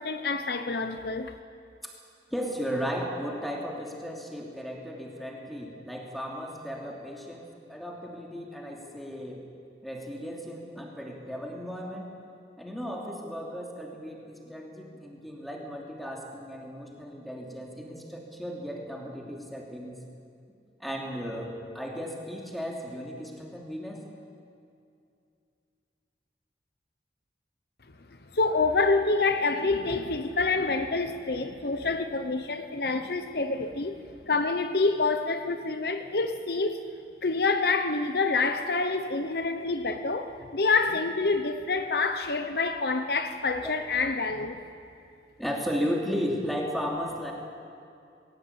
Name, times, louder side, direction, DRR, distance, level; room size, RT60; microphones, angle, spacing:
voice 1, 0.0-1.4 28.3-36.8 37.2-44.6, left 3 dB, 60° left, 0.9 m, -27 dB
voice 2, 2.3-9.4 9.8-12.1 12.6-20.0 20.8-24.0 43.6-43.7 45.4-47.3, equal, ahead, 2.8 m, -35 dB
21.0 x 17.5 x 8.7 m
head